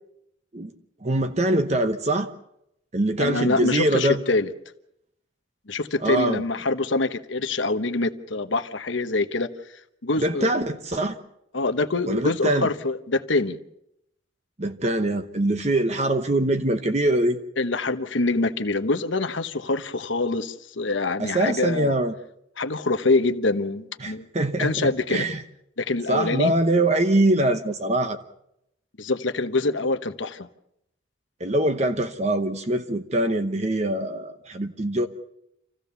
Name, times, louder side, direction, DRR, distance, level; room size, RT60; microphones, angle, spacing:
voice 1, 1.0-2.3 2.9-4.2 6.0-6.4 10.2-11.2 12.1-12.7 14.6-17.4 21.2-22.1 24.0-25.4 26.1-28.2 31.4-35.1, right 1 dB, 35° right, 8 dB, 0.9 m, -23 dB
voice 2, 3.2-4.5 5.7-9.5 10.0-10.7 11.5-13.6 17.6-21.9 22.6-24.3 24.6-25.3 25.8-26.5 29.0-30.5, left 3 dB, 75° left, 8 dB, 1.1 m, -25 dB
27.0 x 15.5 x 7.0 m, 0.81 s
head